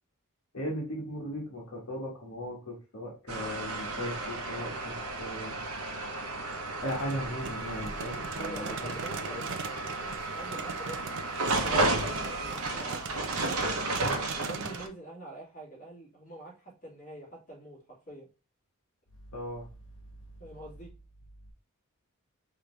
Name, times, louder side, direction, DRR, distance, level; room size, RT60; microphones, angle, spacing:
voice 1, 0.5-4.9 5.2-5.5 6.8-8.9 9.3-9.4 19.3-19.7, equal, 70° left, 1.3 m, -37 dB
sound 1, 3.3-14.9, right 2 dB, 75° right, 0.9 m, -33 dB
sound 2, 6.7-14.9, right 5 dB, 55° right, 0.5 m, -41 dB
voice 2, 8.4-11.1 11.6-13.8 14.3-18.3 20.4-20.9, right 1 dB, 35° left, 2.6 m, -45 dB
4.9 x 2.8 x 3.2 m
head